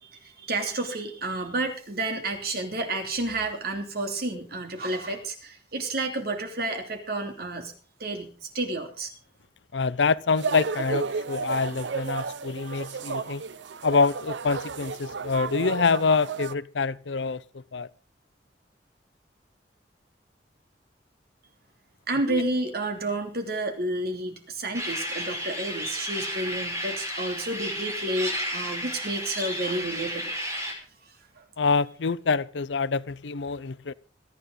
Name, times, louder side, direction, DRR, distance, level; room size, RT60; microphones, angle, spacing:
voice 1, 0.0-7.7 8.0-9.1 22.1-30.3, right 2 dB, 60° right, 3.0 m, -30 dB
voice 2, 9.7-13.4 13.8-17.9 22.3-22.4 31.6-33.9, left 4 dB, 85° left, 0.6 m, -26 dB
sound 1, 10.4-16.6, right 5 dB, 80° right, 0.6 m, -32 dB
sound 2, 24.7-30.7, equal, 15° right, 5.0 m, -32 dB
26.0 x 9.6 x 3.9 m
head